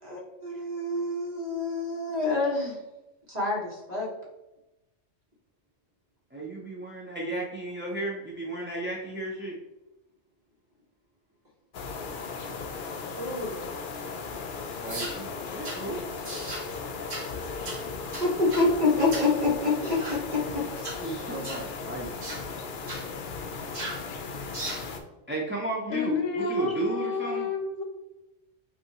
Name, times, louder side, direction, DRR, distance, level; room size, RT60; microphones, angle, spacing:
voice 1, 0.0-2.7 3.3-4.1 13.1-13.6 18.2-20.6 21.0-21.3, left 3 dB, 35° right, -4 dB, 1.3 m, -27 dB
voice 2, 6.3-9.6 14.8-16.1 21.0-22.4 25.3-27.5, right 2 dB, 15° right, -3 dB, 0.4 m, -34 dB
sound 1, 11.7-25.0, left 4 dB, 55° left, 0.6 m, -37 dB
sound 2, 14.9-15.2 15.6-15.8 16.2-16.7 17.1-17.3 17.6-17.8 18.1-18.7 19.1-19.3 19.8-20.2 20.7-21.0 21.4-21.7 22.2-22.4 22.9-23.0 23.7-24.0 24.5-24.9, right 1 dB, 85° right, 1.6 m, -37 dB
voice 3, 25.9-27.8, left 3 dB, 80° left, 4 dB, 1.0 m, -29 dB
5.9 x 2.8 x 2.9 m, 0.95 s
omnidirectional pair, 1.3 m